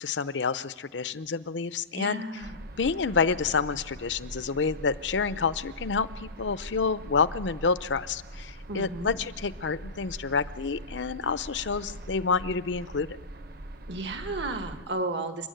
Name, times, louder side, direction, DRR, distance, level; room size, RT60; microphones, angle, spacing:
voice 1, 0.0-2.2 2.8-13.1, left 5 dB, 90° left, 15 dB, 0.7 m, -28 dB
voice 2, 1.9-2.6 8.7-9.1 13.9-15.5, right 2 dB, 80° right, 7 dB, 1.8 m, -33 dB
sound 1, 2.4-14.8, right 1 dB, 55° right, 0.9 m, -42 dB
29.5 x 11.0 x 9.2 m, 1.3 s
head